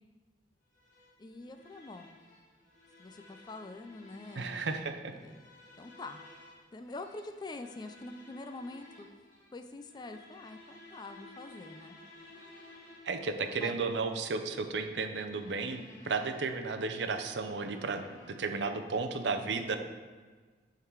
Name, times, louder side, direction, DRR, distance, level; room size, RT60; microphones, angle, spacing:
sound 1, 0.7-18.7, left 1 dB, 45° left, 1.4 m, -56 dB
voice 1, 1.2-2.2 3.0-5.5 5.8-6.2 6.7-9.1 9.5-12.0 13.6-13.7, left 2 dB, 25° left, 7 dB, 0.3 m, -45 dB
voice 2, 4.3-5.1 13.0-19.8, right 4 dB, 75° right, 7 dB, 0.6 m, -34 dB
8.5 x 3.8 x 4.6 m, 1.4 s
head